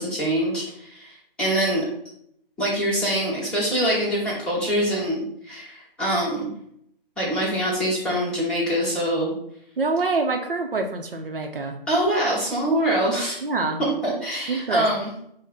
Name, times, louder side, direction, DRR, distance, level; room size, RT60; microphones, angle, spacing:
voice 1, 0.0-1.8 2.6-6.5 7.2-9.3 11.9-13.4 13.8-15.1, right 1 dB, 5° left, -10 dB, 1.1 m, -24 dB
voice 2, 9.8-11.8 13.4-13.8 14.5-14.9, right 3 dB, 65° right, 4 dB, 0.6 m, -25 dB
4.6 x 2.1 x 4.1 m, 0.71 s
figure-of-eight pair, 135°, 30 cm